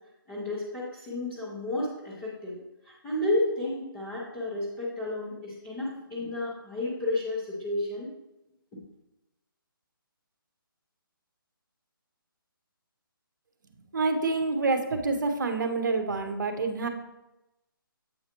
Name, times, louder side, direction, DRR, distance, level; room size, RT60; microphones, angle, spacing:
voice 1, 0.3-2.6 2.8-8.1, left 2 dB, 5° left, -10 dB, 0.6 m, -31 dB
voice 2, 13.9-16.9, right 3 dB, 55° right, 7 dB, 0.8 m, -27 dB
7.8 x 4.6 x 2.9 m, 0.95 s
hypercardioid pair, 175°, 12 cm